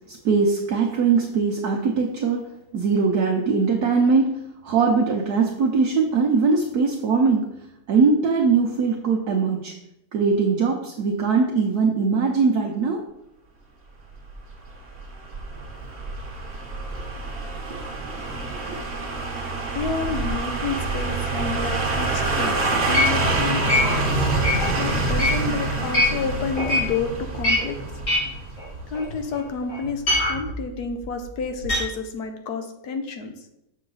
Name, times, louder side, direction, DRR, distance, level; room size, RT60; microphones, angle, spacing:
voice 1, 0.1-2.4 2.7-7.5 7.9-9.7 10.1-13.0 18.7-18.8, right 5 dB, 65° right, 0 dB, 1.2 m, -21 dB
sound 1, 14.3-29.2 29.5-29.6, right 2 dB, 40° right, 1.3 m, -26 dB
voice 2, 19.2-23.8 24.7-27.8 28.9-33.3, left 5 dB, 65° left, 6 dB, 1.2 m, -30 dB
sound 2, 21.6-22.3 22.7-26.3 26.6-26.9 27.3-29.4 29.7-31.8, left 1 dB, 45° left, 2.8 m, -24 dB
6.5 x 6.3 x 3.9 m, 0.85 s
omnidirectional pair, 1.9 m